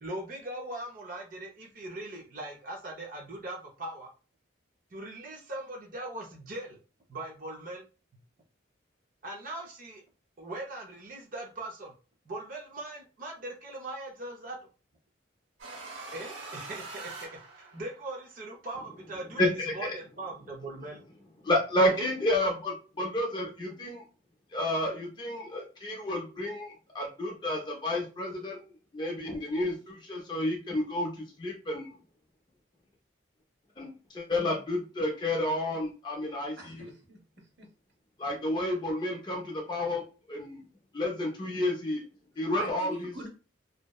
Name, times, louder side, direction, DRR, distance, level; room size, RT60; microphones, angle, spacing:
voice 1, 0.0-4.1 4.9-6.8 7.1-7.8 9.2-10.0 10.4-11.9 12.3-14.6 16.1-19.4 19.7-21.0 21.8-22.1, right 2 dB, 45° right, 0 dB, 0.5 m, -40 dB
sound 1, 15.6-18.1, right 3 dB, 80° right, 1.1 m, -43 dB
voice 2, 19.4-19.9 21.4-24.0 24.5-32.0 33.8-36.9 38.2-40.0 40.3-40.6 40.9-42.0 42.4-43.1, left 1 dB, 25° left, 0 dB, 0.4 m, -30 dB
voice 3, 36.6-37.7 42.5-43.3, equal, 60° right, 0 dB, 0.9 m, -43 dB
2.7 x 2.0 x 2.2 m, 0.34 s
head